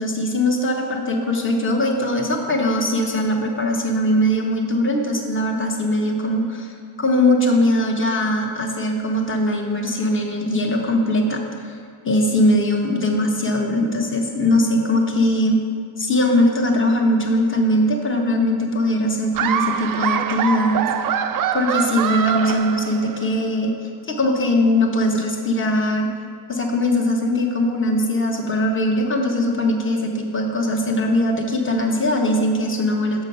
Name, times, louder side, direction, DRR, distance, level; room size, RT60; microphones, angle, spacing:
voice 1, 0.0-6.7 7.0-11.8 12.0-15.6 16.0-20.9 21.5-23.7 24.1-26.1 26.5-33.2, left 1 dB, 25° left, 2 dB, 1.1 m, -20 dB
Laughter, 19.3-23.4, right 8 dB, 45° right, 0.5 m, -24 dB
6.6 x 6.2 x 5.4 m, 2.4 s
cardioid pair, 115°, 48 cm